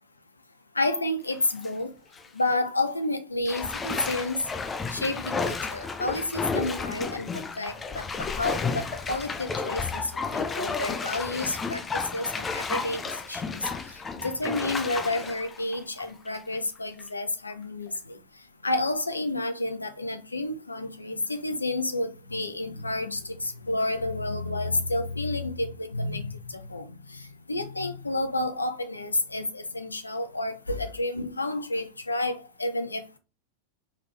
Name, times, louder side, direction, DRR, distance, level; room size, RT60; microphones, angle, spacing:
voice 1, 0.7-1.9 2.3-4.5 4.9-13.0 13.3-18.2 18.6-33.0, left 2 dB, 80° left, 0.6 m, -30 dB
Bathtub (filling or washing), 1.3-1.7 2.1-2.3 3.5-16.6 17.0-17.1, left 4 dB, 15° left, 0.4 m, -32 dB
3.6 x 3.3 x 3.2 m
figure-of-eight pair, 90°, 0 cm